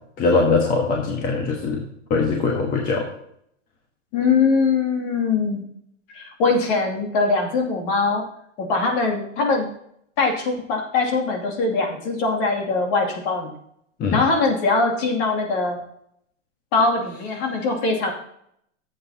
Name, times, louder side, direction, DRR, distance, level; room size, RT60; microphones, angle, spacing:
voice 1, 0.2-1.8 2.1-3.1 14.0-14.2, left 4 dB, 25° left, 1 dB, 1.3 m, -21 dB
voice 2, 4.1-5.6 6.1-8.2 8.6-9.7 10.2-13.5 14.1-15.8 16.7-18.1, left 4 dB, 45° left, 1 dB, 2.6 m, -22 dB
15.0 x 7.9 x 2.9 m, 0.71 s
supercardioid pair, 150°, 37 cm